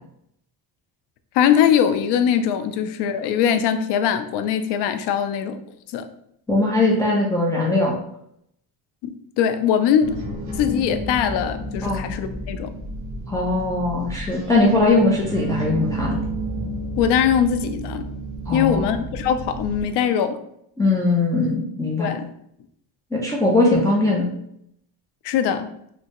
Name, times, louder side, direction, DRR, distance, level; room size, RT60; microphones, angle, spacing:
voice 1, 1.3-5.6 5.9-6.1 9.0-10.3 10.6-12.7 17.0-18.1 18.5-20.4 22.0-22.3 25.2-25.7, left 8 dB, 75° left, 10 dB, 0.5 m, -21 dB
voice 2, 6.5-7.9 11.8-12.0 13.3-16.2 18.5-18.9 20.8-22.1 23.1-24.3, left 2 dB, 10° left, -4 dB, 0.4 m, -20 dB
sound 1, 10.0-19.8, right 2 dB, 45° right, 1.1 m, -31 dB
3.2 x 2.7 x 2.9 m, 0.74 s
cardioid pair, 135°, 41 cm